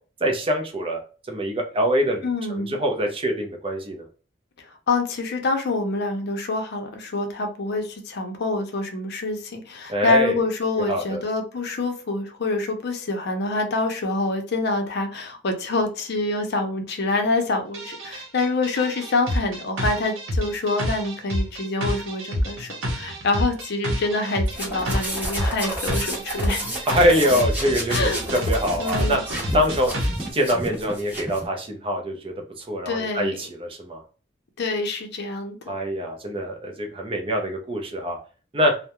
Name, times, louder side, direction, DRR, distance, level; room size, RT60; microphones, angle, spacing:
voice 1, 0.2-1.0 1.3-4.1 9.9-10.4 10.8-11.2 26.9-28.1 28.5-29.2 29.5-29.9 30.3-34.0 35.7-38.2 38.5-38.7, equal, 30° right, 3 dB, 0.5 m, -24 dB
voice 2, 2.2-2.8 4.9-26.6 27.9-28.2 28.8-29.2 32.9-33.4 34.6-35.7, left 3 dB, 60° left, 4 dB, 0.5 m, -26 dB
sound 1, 17.7-30.3, equal, 80° right, 0.7 m, -28 dB
sound 2, 24.5-31.5, right 1 dB, 10° right, 1.0 m, -31 dB
2.3 x 2.0 x 2.8 m, 0.36 s
head